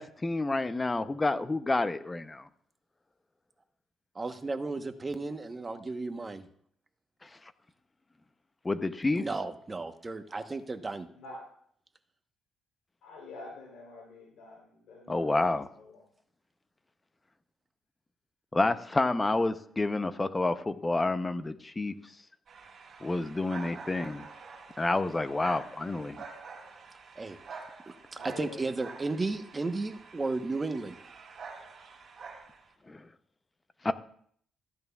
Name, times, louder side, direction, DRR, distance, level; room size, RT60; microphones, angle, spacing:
voice 1, 0.0-2.5 7.2-7.3 8.6-9.2 15.1-15.7 18.5-21.9 23.0-24.3 24.8-26.2 32.9-33.1 33.8-33.9, left 2 dB, 20° left, 0.6 m, -29 dB
voice 2, 4.1-6.5 9.2-11.1 27.2-27.4 27.9-31.0, right 3 dB, 25° right, 1.0 m, -34 dB
voice 3, 13.0-16.0 25.3-25.7 28.1-28.7, left 3 dB, 80° left, 3.3 m, -47 dB
sound 1, 22.5-32.7, right 5 dB, 55° right, 3.9 m, -47 dB
14.5 x 10.5 x 2.3 m
cardioid pair, 90°, 0 cm